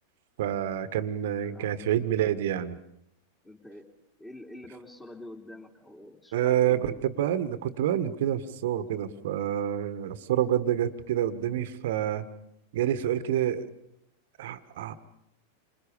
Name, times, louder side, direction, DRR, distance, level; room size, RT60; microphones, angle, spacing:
voice 1, 0.4-2.8 6.3-12.2 12.7-13.6 14.4-14.9, right 10 dB, 55° right, 12 dB, 1.6 m, -28 dB
voice 2, 1.4-1.9 3.4-3.9 4.2-7.0, left 1 dB, 10° left, 3 dB, 3.4 m, -46 dB
28.5 x 26.5 x 5.2 m, 0.81 s
figure-of-eight pair, 90°, 0 cm